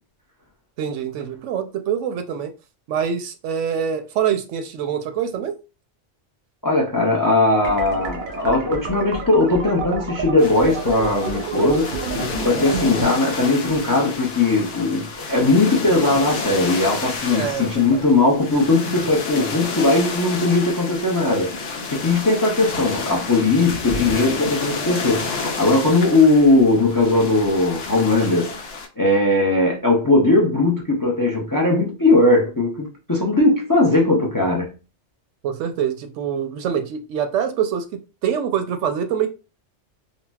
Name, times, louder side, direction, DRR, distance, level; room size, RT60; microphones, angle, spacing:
voice 1, 0.8-2.5 2.9-5.6 17.3-18.0 22.0-22.1 35.4-37.8 38.2-39.3, right 8 dB, 85° right, 0.9 m, -25 dB
voice 2, 6.6-12.1 12.4-34.7, left 2 dB, 30° left, 0.4 m, -19 dB
sound 1, 7.6-13.1, right 4 dB, 50° right, 0.6 m, -29 dB
sound 2, 10.4-28.9, left 4 dB, 85° left, 0.9 m, -30 dB
3.9 x 2.0 x 2.3 m
omnidirectional pair, 1.2 m